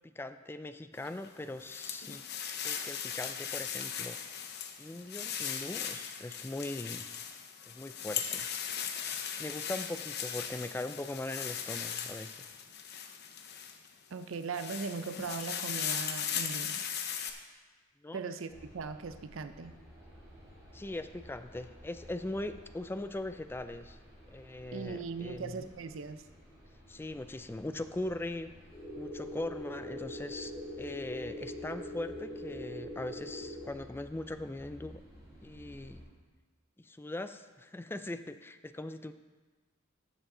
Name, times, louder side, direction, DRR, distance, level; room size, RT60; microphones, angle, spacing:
voice 1, 0.0-2.2 2.5-4.2 4.8-7.0 7.7-8.5 9.4-12.4 18.0-18.2 20.7-24.0 24.3-25.7 26.9-28.5 29.0-30.5 30.8-34.9 35.4-36.0 36.8-39.1, left 2 dB, 10° left, 10 dB, 0.3 m, -40 dB
sound 1, 1.0-13.9 14.3-17.3, left 8 dB, 55° left, 0.8 m, -38 dB
voice 2, 14.1-16.7 18.1-19.7 24.7-26.2, right 4 dB, 75° right, 11 dB, 0.5 m, -39 dB
sound 2, 18.5-36.0, equal, 15° right, 3.4 m, -55 dB
sound 3, 28.7-33.7, equal, 35° left, 2.3 m, -42 dB
13.5 x 7.3 x 3.8 m, 1.3 s
head